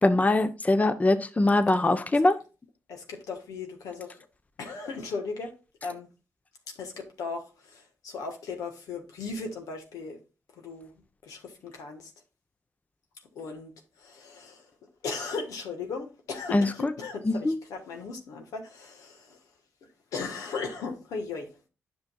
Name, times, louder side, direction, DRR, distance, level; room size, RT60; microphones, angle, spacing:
voice 1, 0.0-2.4 16.5-16.9 17.3-17.5, left 2 dB, 25° left, 0.7 m, -22 dB
voice 2, 2.9-4.2 4.6-5.5 5.8-6.1 6.7-10.2 10.5-10.9 11.2-12.1 13.3-14.7 15.0-19.4 20.1-21.5, left 4 dB, 85° left, 1.4 m, -37 dB
9.6 x 6.1 x 2.3 m
supercardioid pair, 50°, 6 cm